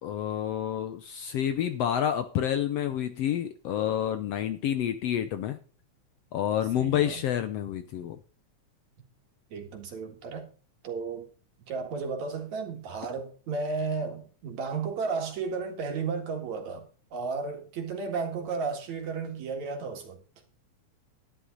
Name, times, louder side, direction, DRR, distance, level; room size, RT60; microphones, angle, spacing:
voice 1, 0.0-5.6 6.3-8.2, left 10 dB, 70° left, 1.6 m, -29 dB
voice 2, 6.7-7.2 9.5-10.5 10.8-11.3 11.7-16.8 17.1-20.2, right 4 dB, 70° right, 3.2 m, -33 dB
11.5 x 11.0 x 3.9 m
omnidirectional pair, 3.5 m